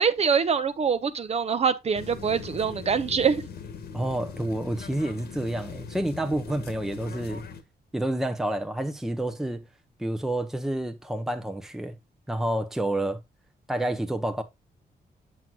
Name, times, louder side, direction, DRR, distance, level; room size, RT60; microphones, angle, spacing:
voice 1, 0.0-3.4, right 6 dB, 40° right, 0.8 m, -24 dB
sound 1, 1.9-7.6, left 6 dB, 75° left, 1.5 m, -41 dB
voice 2, 3.9-7.4 7.9-9.7 10.0-12.0 12.3-13.2 13.7-14.4, right 1 dB, 5° right, 0.8 m, -29 dB
7.7 x 7.6 x 2.3 m
wide cardioid pair, 175°, 17 cm